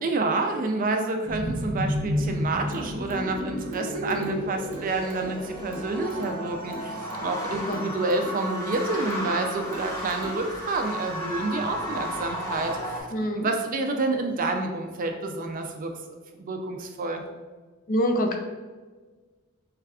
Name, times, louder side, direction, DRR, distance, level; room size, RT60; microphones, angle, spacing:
voice 1, 0.0-15.9 16.4-17.2, right 3 dB, 40° right, 4 dB, 0.4 m, -29 dB
sound 1, 1.2-13.0, equal, 15° left, 0.8 m, -32 dB
sound 2, 2.7-10.7, right 1 dB, 70° right, 0.7 m, -42 dB
voice 2, 13.1-13.5 17.9-18.4, equal, 40° left, 4 dB, 0.4 m, -25 dB
4.7 x 3.2 x 2.3 m, 1.4 s
head